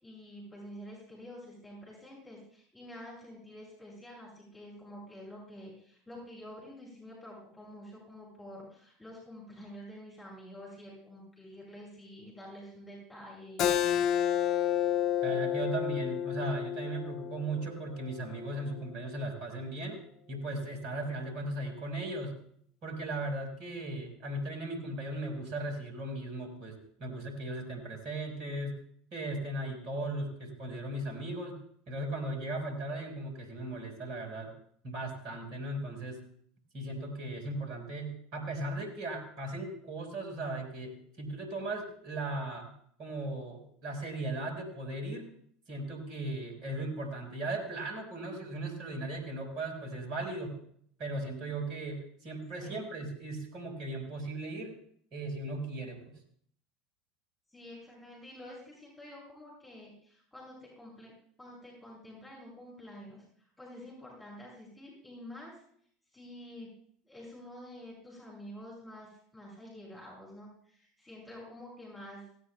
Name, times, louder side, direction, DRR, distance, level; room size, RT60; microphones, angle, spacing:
voice 1, 0.0-14.0 52.6-52.9 57.5-61.1 61.4-65.6 66.1-66.7 67.0-72.2, left 1 dB, 10° left, -4 dB, 6.0 m, -48 dB
Keyboard (musical), 13.6-18.8, left 10 dB, 45° left, 0.7 m, -30 dB
voice 2, 15.2-20.0 20.3-22.3 22.8-28.8 29.1-31.6 31.9-34.5 34.8-36.2 36.7-42.7 43.0-45.3 45.7-50.6 51.0-54.8 55.1-56.0, right 2 dB, 50° right, 4 dB, 4.7 m, -37 dB
17.5 x 16.5 x 2.3 m, 0.62 s
figure-of-eight pair, 75°, 0 cm